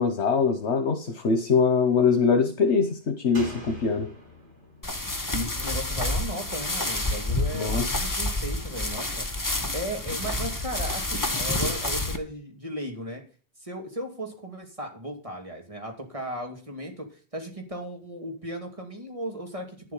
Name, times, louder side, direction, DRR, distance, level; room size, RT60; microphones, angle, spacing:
voice 1, 0.0-4.1 7.5-8.1, left 5 dB, 80° left, 6 dB, 1.5 m, -23 dB
Slam, 3.3-6.8 7.1-7.2, left 2 dB, 50° right, 4.3 m, -44 dB
sound 1, 4.8-12.2, left 2 dB, 20° left, 1.2 m, -29 dB
voice 2, 5.3-9.3 9.7-13.2 13.6-19.9, equal, 30° right, 2 dB, 2.8 m, -36 dB
11.0 x 7.7 x 5.6 m, 0.39 s
omnidirectional pair, 1.1 m